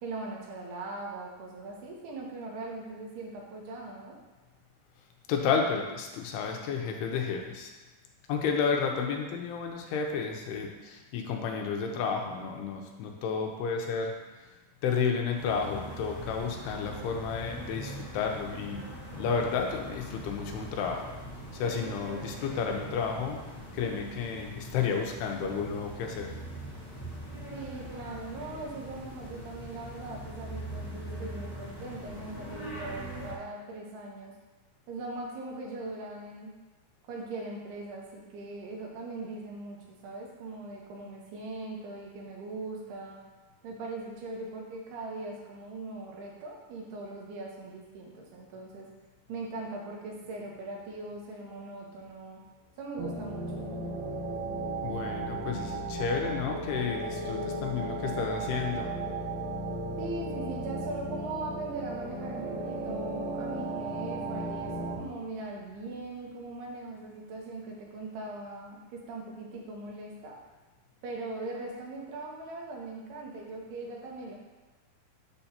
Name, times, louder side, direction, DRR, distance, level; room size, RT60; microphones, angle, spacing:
voice 1, 0.0-4.2 27.5-34.3 34.9-36.5 37.1-43.2 43.6-48.9 49.3-52.4 52.8-53.7 60.0-70.4 71.0-74.4, right 2 dB, 85° right, -1 dB, 3.1 m, -40 dB
voice 2, 5.3-7.7 8.3-14.2 14.8-18.8 19.1-21.1 21.5-23.4 23.7-26.3 54.8-58.9, left 6 dB, 85° left, 2 dB, 2.7 m, -31 dB
sound 1, 15.4-33.3, equal, 40° left, 1.3 m, -42 dB
sound 2, 53.0-65.0, right 2 dB, 65° right, 2.0 m, -35 dB
7.1 x 6.8 x 2.9 m, 1.2 s
omnidirectional pair, 4.6 m